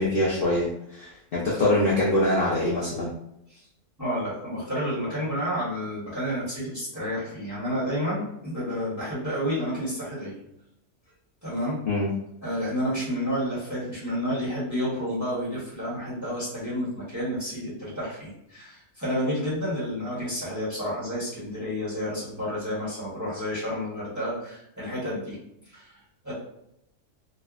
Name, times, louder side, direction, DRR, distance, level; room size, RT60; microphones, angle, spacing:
voice 1, 0.0-3.1 11.9-12.1, left 1 dB, 55° left, -6 dB, 0.7 m, -24 dB
voice 2, 4.0-10.3 11.4-11.8 12.4-25.4 25.7-26.3, equal, 15° right, -9 dB, 1.0 m, -30 dB
3.4 x 2.1 x 2.3 m, 0.78 s
omnidirectional pair, 1.5 m